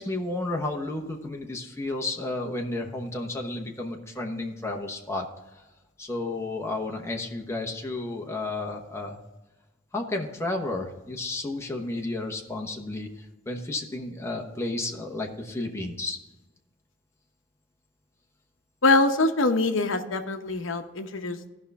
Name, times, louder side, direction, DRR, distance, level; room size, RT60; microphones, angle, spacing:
voice 1, 0.0-5.2 5.5-5.6 6.0-9.2 9.9-16.2, left 2 dB, 15° left, 1 dB, 1.1 m, -32 dB
voice 2, 18.8-21.5, left 2 dB, 70° left, 6 dB, 0.8 m, -24 dB
15.0 x 5.6 x 3.5 m, 1.1 s
head